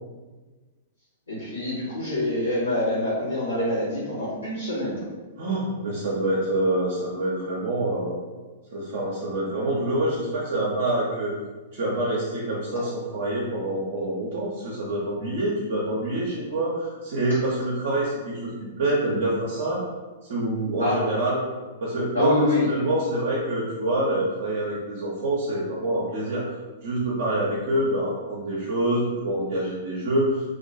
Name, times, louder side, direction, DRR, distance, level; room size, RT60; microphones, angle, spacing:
voice 1, 1.3-5.0 20.8-21.0 22.1-22.7, left 1 dB, 80° left, -12 dB, 1.0 m, -25 dB
voice 2, 5.4-8.2 8.7-11.3 11.7-18.5 18.8-19.8 20.2-21.4 21.8-26.4 26.8-30.5, right 1 dB, 55° right, -5 dB, 0.5 m, -26 dB
2.3 x 2.2 x 2.5 m, 1.3 s
figure-of-eight pair, 105°, 0 cm